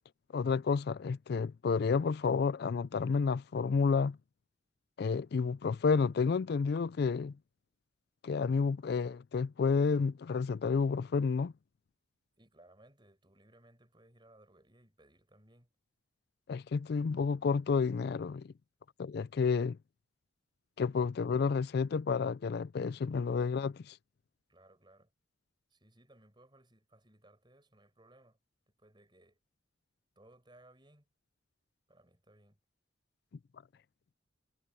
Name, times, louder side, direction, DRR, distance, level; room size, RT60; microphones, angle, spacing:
voice 1, 0.3-4.2 5.0-7.3 8.2-11.5 16.5-18.5 19.0-19.8 20.8-24.0, left 5 dB, 55° left, 0.3 m, -30 dB
voice 2, 12.4-15.7 20.9-21.2 24.5-25.1 25.7-28.4 28.8-29.4 30.2-31.1 31.9-32.6, right 1 dB, 25° right, 5.5 m, -62 dB
head